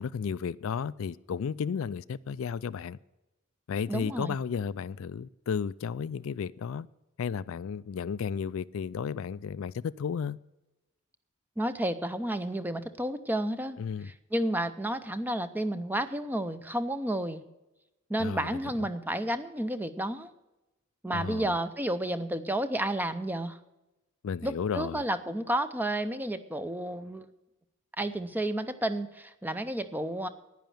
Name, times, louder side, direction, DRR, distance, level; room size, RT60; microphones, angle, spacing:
voice 1, 0.0-3.0 3.7-6.9 7.2-10.4 13.8-14.1 18.2-18.9 21.1-21.6 24.2-25.0, left 6 dB, 60° left, 17 dB, 0.3 m, -33 dB
voice 2, 3.9-4.4 11.6-13.8 14.0-17.4 18.1-20.3 21.0-23.6 24.4-27.3 28.0-30.3, right 1 dB, 10° right, 11 dB, 0.5 m, -31 dB
10.5 x 10.0 x 7.5 m, 1.0 s
head